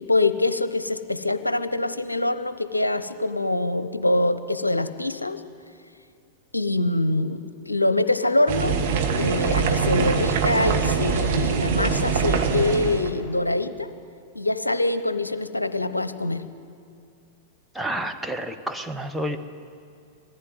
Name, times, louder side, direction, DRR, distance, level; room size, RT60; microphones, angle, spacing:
voice 1, 0.0-5.4 6.5-8.8 9.2-13.9 14.3-16.4, left 2 dB, 85° left, 12 dB, 0.8 m, -24 dB
sound 1, 8.5-13.1, right 6 dB, 55° right, 1.8 m, -23 dB
voice 2, 17.7-19.4, right 1 dB, 5° right, 4 dB, 1.1 m, -29 dB
19.5 x 15.0 x 9.5 m, 2.4 s
figure-of-eight pair, 95°, 0 cm